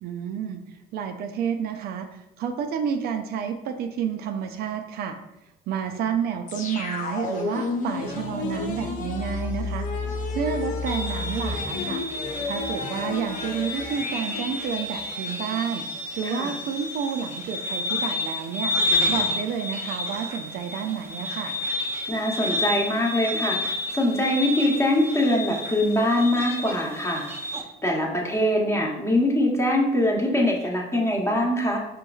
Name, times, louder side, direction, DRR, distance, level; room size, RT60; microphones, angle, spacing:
voice 1, 0.0-5.2 5.7-9.9 10.3-12.0 12.5-15.9 16.2-21.5, right 7 dB, 70° right, 6 dB, 0.4 m, -30 dB
sound 1, 6.5-17.3 17.6-17.7, left 3 dB, 50° left, 0.6 m, -32 dB
sound 2, 10.9-27.6, left 2 dB, 15° right, 0.5 m, -30 dB
voice 2, 22.1-27.3 27.8-31.8, left 1 dB, 15° left, -1 dB, 0.9 m, -23 dB
5.0 x 3.0 x 2.3 m, 0.89 s
cardioid pair, 110°, 17 cm